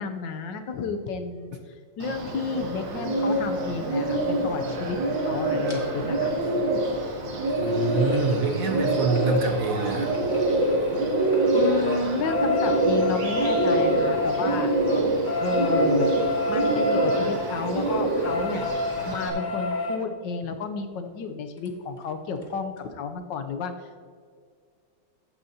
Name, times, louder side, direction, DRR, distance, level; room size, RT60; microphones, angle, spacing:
voice 1, 0.0-1.6 2.0-6.3 11.5-14.7 15.4-16.1 16.5-18.7 19.0-23.7, left 5 dB, 75° left, 7 dB, 1.4 m, -32 dB
Bird, 2.0-19.3, right 2 dB, 75° right, 2.0 m, -25 dB
sound 1, 5.7-5.8 7.4-10.9 11.2-20.0 21.6-21.7 22.0-22.1 22.4-22.5, left 2 dB, 30° left, 1.2 m, -29 dB
voice 2, 7.6-10.2, right 4 dB, 55° right, 4 dB, 1.3 m, -26 dB
14.5 x 9.2 x 2.8 m, 2.1 s
omnidirectional pair, 2.1 m